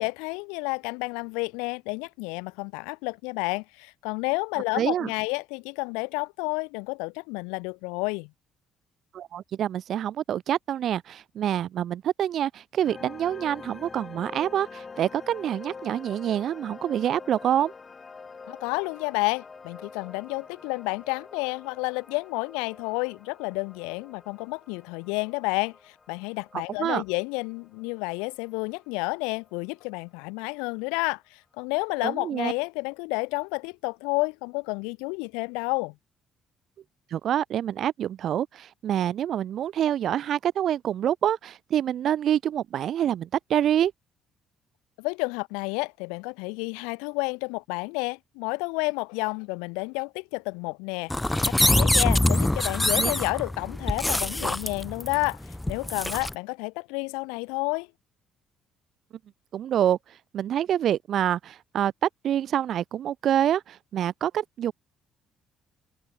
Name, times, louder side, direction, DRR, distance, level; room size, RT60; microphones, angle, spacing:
voice 1, 0.0-8.3 18.5-35.9 45.0-51.1 51.4-55.4 55.7-57.9, left 31 dB, 80° left, 2.1 m, -30 dB
voice 2, 4.7-5.1 9.1-17.7 26.8-27.0 32.0-32.5 37.1-43.9 53.0-53.1 59.5-60.0 60.3-64.7, right 10 dB, 60° right, 1.5 m, -26 dB
sound 1, 12.8-29.8, left 4 dB, 35° left, 3.1 m, -46 dB
sound 2, 51.1-56.3, left 1 dB, 10° left, 2.3 m, -24 dB
hypercardioid pair, 55°, 0 cm